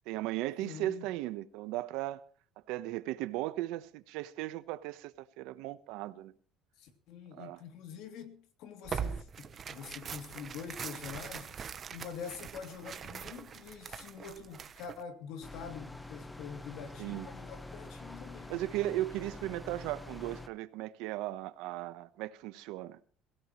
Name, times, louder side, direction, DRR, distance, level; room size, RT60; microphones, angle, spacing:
voice 1, 0.1-2.2 2.7-6.3 7.4-7.6 17.0-17.3 18.5-23.0, right 15 dB, 75° right, 1.1 m, -37 dB
voice 2, 0.6-1.1 6.8-11.6 11.9-18.6, left 7 dB, 65° left, 2.9 m, -45 dB
Tearing, 8.8-15.0, right 7 dB, 25° right, 0.9 m, -42 dB
sound 1, 15.4-20.5, left 2 dB, 5° left, 0.9 m, -46 dB
22.5 x 16.0 x 3.2 m
cardioid pair, 160°, 0 cm